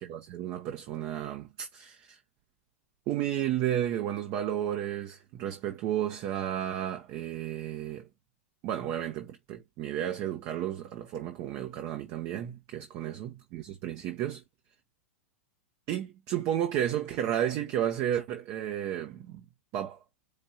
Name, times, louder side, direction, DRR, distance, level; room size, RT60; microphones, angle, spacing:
voice 1, 0.0-2.2 3.1-8.1 8.6-14.4 15.9-19.5 19.7-20.0, right 11 dB, 40° right, 0.7 m, -32 dB
4.9 x 2.5 x 4.2 m
figure-of-eight pair, 95°, 7 cm